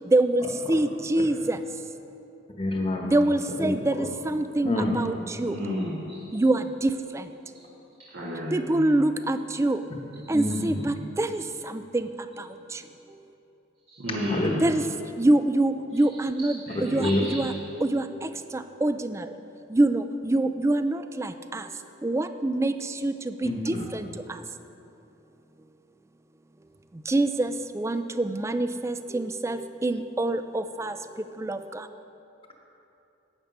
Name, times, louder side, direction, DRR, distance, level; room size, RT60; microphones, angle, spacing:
voice 1, 0.1-1.6 3.1-5.7 6.3-7.3 8.5-9.8 10.3-12.1 12.4-12.8 14.6-14.8 15.2-17.5 17.8-19.3 19.7-21.7 22.0-24.4 27.1-31.0 31.4-31.9, right 2 dB, 15° right, 10 dB, 0.3 m, -26 dB
voice 2, 2.6-3.2 3.6-3.8 4.6-4.9 10.3-10.6 14.4-14.5 17.0-17.2 23.4-23.8, left 1 dB, 30° left, 1 dB, 1.1 m, -26 dB
voice 3, 5.4-6.2 8.1-8.9 13.9-14.6 16.4-17.5, equal, 65° right, -7 dB, 1.6 m, -32 dB
11.5 x 8.5 x 5.3 m, 2.9 s
head